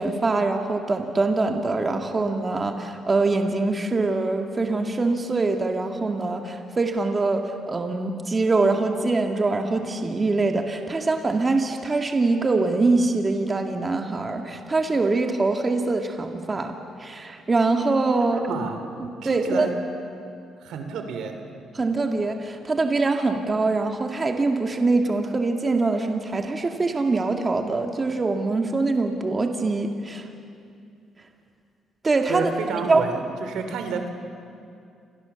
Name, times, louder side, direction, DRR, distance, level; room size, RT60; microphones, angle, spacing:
voice 1, 0.0-16.7 17.0-18.4 19.2-19.7 21.7-30.3 32.0-32.5 32.8-33.0, right 3 dB, 30° right, 4 dB, 2.1 m, -23 dB
voice 2, 18.3-18.8 19.2-19.7 20.6-21.4 32.3-34.1, right 5 dB, 80° right, 6 dB, 3.3 m, -29 dB
29.5 x 26.5 x 7.1 m, 2.4 s
cardioid pair, 90°, 0 cm